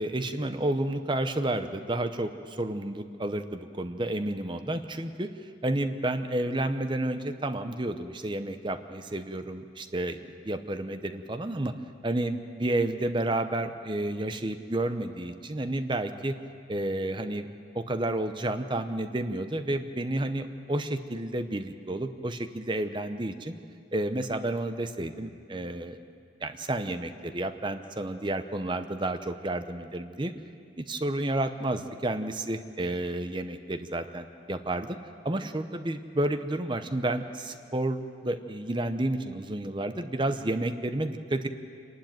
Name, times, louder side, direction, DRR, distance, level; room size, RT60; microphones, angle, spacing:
voice 1, 0.0-5.3 5.6-11.7 12.0-16.4 16.7-17.5 17.7-23.5 23.9-26.0 26.4-30.3 30.8-35.0 35.2-41.5, right 1 dB, 25° right, 9 dB, 0.8 m, -31 dB
26.5 x 12.0 x 9.2 m, 2.3 s
head